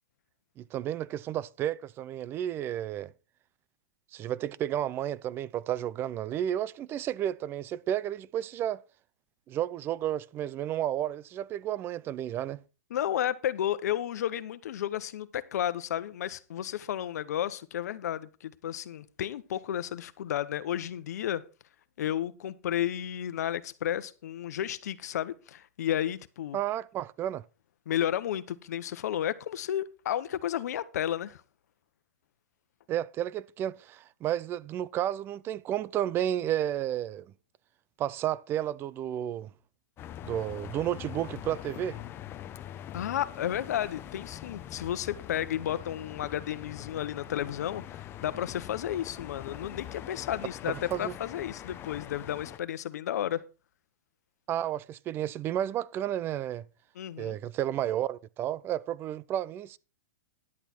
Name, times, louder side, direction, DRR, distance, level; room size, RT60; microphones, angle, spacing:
voice 1, 0.6-3.1 4.1-8.8 9.5-12.6 26.5-27.4 32.9-37.3 38.0-39.5 40.2-42.0 50.7-51.1 54.5-56.6 57.2-59.8, right 11 dB, 25° right, 0.4 m, -32 dB
voice 2, 12.9-21.4 22.0-26.6 27.9-31.4 42.9-53.4 57.0-57.4, left 11 dB, 75° left, 1.0 m, -32 dB
sound 1, 40.0-52.6, left 11 dB, 25° left, 0.7 m, -43 dB
11.0 x 8.1 x 4.4 m
hypercardioid pair, 135°, 9 cm